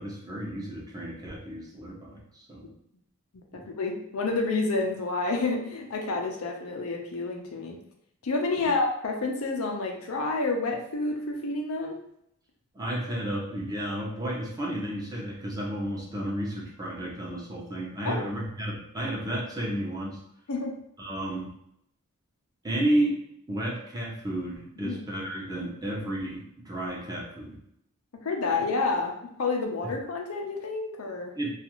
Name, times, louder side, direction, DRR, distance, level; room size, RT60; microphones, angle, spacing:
voice 1, 0.0-2.7 3.5-3.6 8.6-8.7 12.7-20.2 21.0-21.5 22.6-23.1 23.5-27.6 31.4-31.5, right 1 dB, 20° right, -4 dB, 0.6 m, -32 dB
voice 2, 3.5-7.8 8.2-12.0 18.0-18.2 20.5-20.7 24.8-25.0 28.2-29.1 29.4-31.3, left 3 dB, 85° left, 2 dB, 0.5 m, -29 dB
2.4 x 2.4 x 2.9 m, 0.76 s
head